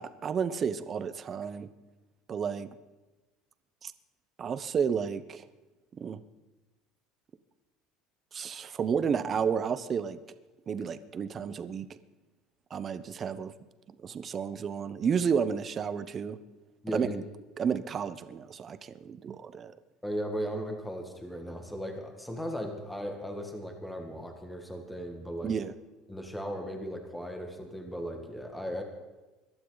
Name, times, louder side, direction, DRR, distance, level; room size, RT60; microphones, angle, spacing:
voice 1, 0.0-1.7 2.3-2.7 3.8-3.9 4.4-5.4 6.0-6.2 8.3-10.2 10.7-11.9 12.7-13.5 14.0-16.4 16.9-17.2 17.6-19.7 25.4-25.7, right 6 dB, 30° right, 13 dB, 0.9 m, -31 dB
voice 2, 16.8-17.2 20.0-25.5 26.1-28.8, equal, 5° left, 3 dB, 2.0 m, -37 dB
22.0 x 12.0 x 4.0 m, 1.2 s
cardioid pair, 140°, 0 cm